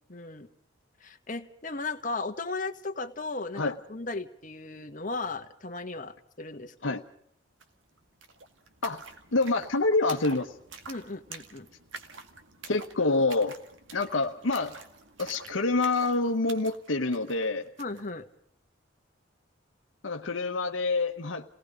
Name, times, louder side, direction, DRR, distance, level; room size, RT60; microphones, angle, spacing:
voice 1, 0.1-0.5 1.0-7.0 10.9-11.7 17.8-18.2, left 3 dB, 45° left, 6 dB, 1.5 m, -36 dB
sound 1, 7.6-7.7 7.9-18.1, right 4 dB, 85° right, 2.1 m, -47 dB
voice 2, 9.3-10.5 12.7-13.5 13.9-14.8 15.2-17.7 20.0-21.4, left 3 dB, 90° left, 4 dB, 1.2 m, -27 dB
29.5 x 18.5 x 5.2 m, 0.69 s
head